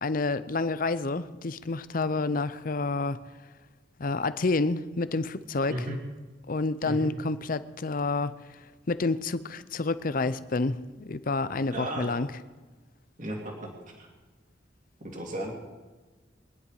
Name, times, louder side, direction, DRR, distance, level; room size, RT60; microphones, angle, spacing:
voice 1, 0.0-3.2 4.0-5.8 6.5-8.4 8.9-12.3, left 3 dB, 50° left, 0.6 m, -29 dB
voice 2, 6.8-7.1 11.7-12.1 13.2-14.1 15.1-15.5, right 1 dB, 45° right, 2.5 m, -35 dB
23.0 x 10.5 x 4.9 m
head